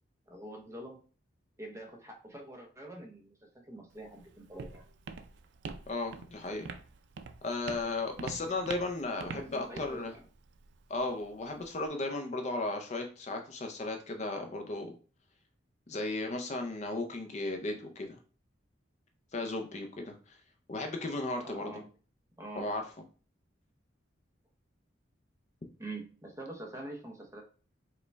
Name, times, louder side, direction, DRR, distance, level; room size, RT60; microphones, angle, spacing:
voice 1, 0.3-1.0 1.6-4.8 9.3-10.2 21.4-21.9 22.4-22.7 25.8-27.4, right 1 dB, 15° right, 1 dB, 0.7 m, -45 dB
Walk footsteps, 3.9-11.9, right 4 dB, 70° right, 0.4 m, -46 dB
voice 2, 5.9-6.7 7.4-10.1 10.9-15.0 15.9-18.2 19.3-20.4 20.7-21.7 22.6-22.8, left 2 dB, 35° left, 4 dB, 0.5 m, -35 dB
5.0 x 2.2 x 3.3 m, 0.38 s
head